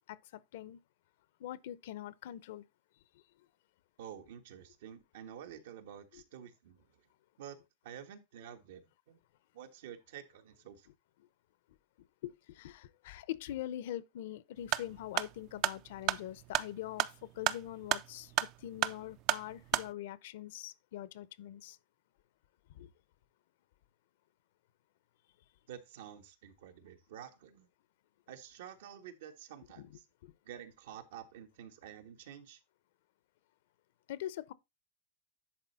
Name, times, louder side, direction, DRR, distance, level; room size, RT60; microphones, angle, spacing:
voice 1, 0.1-0.8 1.4-2.6 6.1-6.2 12.2-17.1 17.4-18.3 18.6-21.8 22.8-22.9 29.8-29.9 30.2-30.3 34.1-34.5, left 12 dB, 70° left, 0.7 m, -43 dB
voice 2, 4.0-6.9 7.4-7.6 7.8-9.2 9.5-10.9 25.7-27.7 28.3-30.0 30.4-32.6, right 9 dB, 75° right, 1.4 m, -50 dB
sound 1, 14.6-19.9, right 14 dB, 40° right, 0.4 m, -34 dB
10.5 x 4.4 x 4.2 m
supercardioid pair, 155°, 0 cm